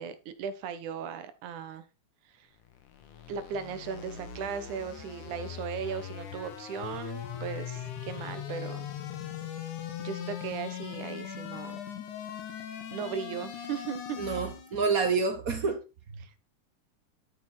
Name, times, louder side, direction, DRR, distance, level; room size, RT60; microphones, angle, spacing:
voice 1, 0.0-1.9 2.4-2.5 3.3-8.9 10.0-11.8 12.9-14.2 16.2-16.4, right 7 dB, 90° right, 2.6 m, -37 dB
sound 1, 2.6-14.8, left 9 dB, 90° left, 3.0 m, -40 dB
voice 2, 14.2-15.8 16.1-16.4, right 4 dB, 60° right, 0.9 m, -28 dB
12.0 x 6.2 x 4.3 m
omnidirectional pair, 3.4 m